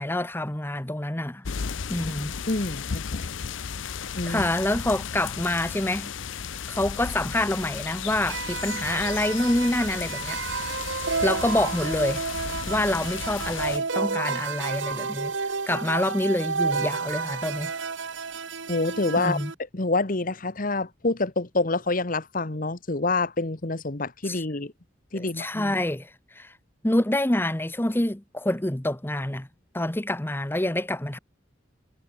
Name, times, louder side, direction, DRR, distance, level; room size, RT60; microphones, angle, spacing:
voice 1, 0.0-1.4 1.9-2.3 4.2-6.1 6.7-10.9 11.2-12.3 12.7-15.3 15.7-17.7 19.2-19.5 24.2-24.4 25.1-26.5 26.8-29.5 29.7-31.2, left 1 dB, 10° left, 0.9 m, -27 dB
sound 1, 1.4-13.8, left 6 dB, 85° left, 0.7 m, -34 dB
voice 2, 2.5-3.3 4.2-4.4 18.7-19.4 19.7-24.7 25.1-25.7, left 3 dB, 45° left, 1.3 m, -27 dB
sound 2, 8.3-19.5, right 4 dB, 75° right, 1.5 m, -31 dB
head